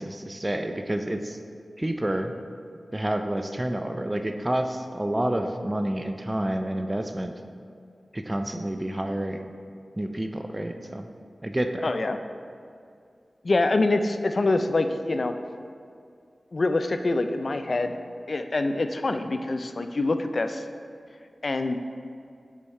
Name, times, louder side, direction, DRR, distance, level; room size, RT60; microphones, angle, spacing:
voice 1, 0.0-1.4 1.8-2.3 2.9-7.3 8.1-9.5 10.0-11.1 11.4-11.9, right 1 dB, 20° right, 6 dB, 0.4 m, -29 dB
voice 2, 11.8-12.2 13.4-15.3 16.5-18.0 18.3-20.7 21.4-21.8, left 2 dB, 55° left, 8 dB, 0.3 m, -25 dB
5.3 x 4.8 x 4.3 m, 2.3 s
wide cardioid pair, 65°, 0 cm